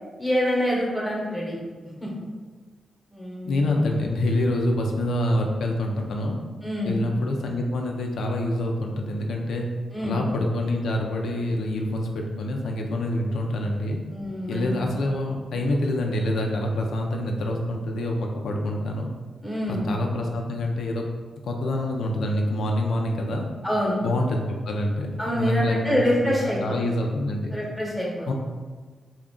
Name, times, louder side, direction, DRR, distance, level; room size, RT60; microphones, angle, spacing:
voice 1, 0.2-1.6 2.0-2.1 3.1-3.7 6.6-7.0 9.9-10.2 14.1-14.7 19.4-19.8 23.6-24.0 25.2-26.6 27.5-28.3, equal, ahead, -4 dB, 0.8 m, -26 dB
voice 2, 3.4-6.4 6.8-9.7 10.0-14.0 14.5-19.1 19.7-21.0 21.4-23.5 24.0-27.6 28.3-28.4, left 1 dB, 80° left, 1 dB, 0.3 m, -26 dB
2.4 x 2.1 x 3.6 m, 1.4 s
cardioid pair, 95°, 0 cm